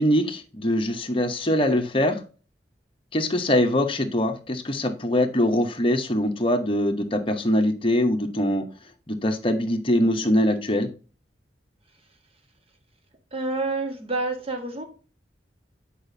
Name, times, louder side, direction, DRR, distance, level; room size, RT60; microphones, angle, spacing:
voice 1, 0.0-2.2 3.1-8.7 9.1-10.9, left 1 dB, 30° left, 5 dB, 1.0 m, -23 dB
voice 2, 13.3-14.8, right 2 dB, 35° right, 4 dB, 1.5 m, -28 dB
8.6 x 4.9 x 2.7 m, 0.35 s
head